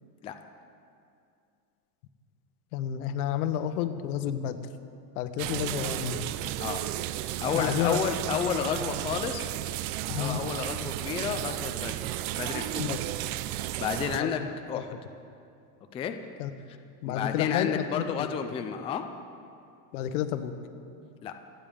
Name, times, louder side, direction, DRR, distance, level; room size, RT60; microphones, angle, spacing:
voice 1, 2.7-4.6 5.1-6.3 7.5-8.0 10.1-10.4 12.8-13.0 14.2-14.8 16.4-16.7 17.0-18.3 19.9-20.5, left 10 dB, 75° left, 10 dB, 1.2 m, -31 dB
sound 1, 5.4-14.2, right 14 dB, 45° right, 0.6 m, -33 dB
voice 2, 7.4-9.5 10.2-11.9 12.3-12.9 13.8-14.4 14.7-14.9 15.9-16.2 17.1-19.0 21.2-21.3, left 7 dB, 15° left, 6 dB, 0.4 m, -31 dB
27.0 x 9.2 x 5.2 m, 2.5 s
supercardioid pair, 145°, 45 cm